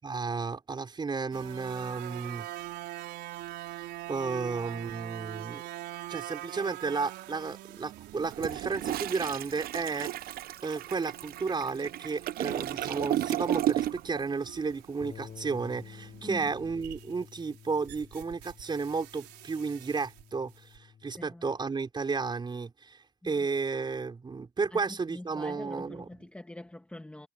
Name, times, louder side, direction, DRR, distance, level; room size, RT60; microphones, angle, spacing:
voice 1, 0.0-2.5 3.7-5.6 6.1-10.3 10.6-23.0 23.2-26.1, right 4 dB, 25° right, 5.2 m, -33 dB
sound 1, 1.3-20.2 20.5-20.8, right 15 dB, 80° right, 4.5 m, -45 dB
Toilet flush, 8.2-14.2 14.5-14.7, right 13 dB, 65° right, 0.8 m, -33 dB
Bass guitar, 15.0-21.3, left 8 dB, 45° left, 3.7 m, -51 dB
voice 2, 24.7-27.3, left 1 dB, 5° left, 1.8 m, -44 dB
cardioid pair, 110°, 17 cm